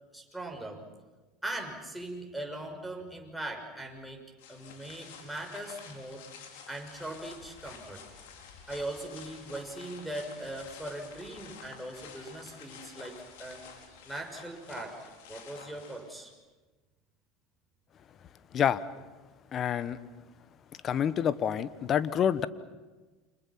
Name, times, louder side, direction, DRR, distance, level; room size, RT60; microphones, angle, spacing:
voice 1, 0.1-0.8 1.4-4.2 4.5-6.2 6.7-8.0 8.7-13.6 14.0-15.0 15.3-16.3, right 1 dB, ahead, 1 dB, 6.3 m, -40 dB
sound 1, 4.4-16.3, left 6 dB, 70° left, 4.6 m, -50 dB
voice 2, 19.5-20.0 20.8-22.5, left 9 dB, 40° left, 15 dB, 1.3 m, -27 dB
29.5 x 27.0 x 6.1 m, 1.3 s
hypercardioid pair, 80°, 0 cm